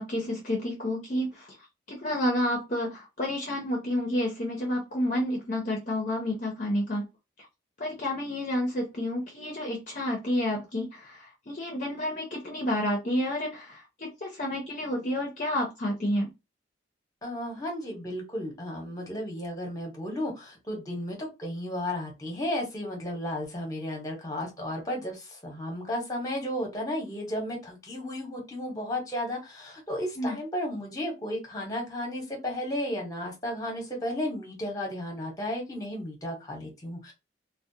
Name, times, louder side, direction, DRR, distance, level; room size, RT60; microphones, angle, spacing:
voice 1, 0.0-1.5 1.9-7.1 7.8-16.3 30.2-30.4, left 1 dB, 40° left, 0.5 m, -30 dB
voice 2, 17.2-37.1, left 1 dB, 20° left, 0.8 m, -34 dB
2.3 x 2.0 x 2.6 m
head